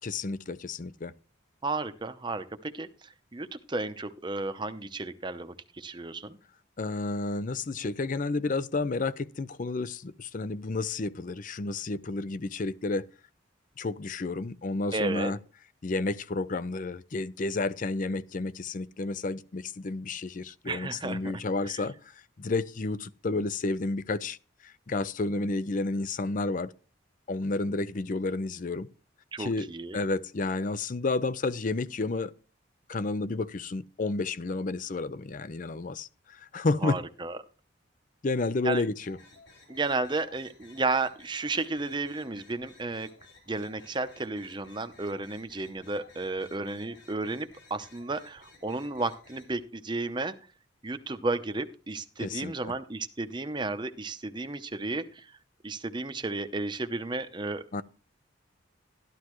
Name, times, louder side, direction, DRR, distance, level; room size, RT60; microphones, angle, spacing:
voice 1, 0.0-1.1 6.8-13.1 13.8-15.4 15.8-21.9 22.4-24.4 24.6-26.7 27.3-28.9 29.4-29.7 29.9-32.3 32.9-37.0 38.2-39.2 52.2-52.7 57.7-57.8, left 3 dB, 40° left, 0.5 m, -31 dB
voice 2, 1.6-6.4 14.9-15.3 20.6-21.3 21.6-21.8 29.3-30.0 36.8-37.4 38.6-38.8 39.7-43.1 43.5-50.3 50.8-55.3 55.6-57.6, right 3 dB, 20° right, 0.7 m, -33 dB
sound 1, 38.9-49.6, left 3 dB, 60° left, 3.8 m, -56 dB
13.0 x 11.5 x 3.1 m
head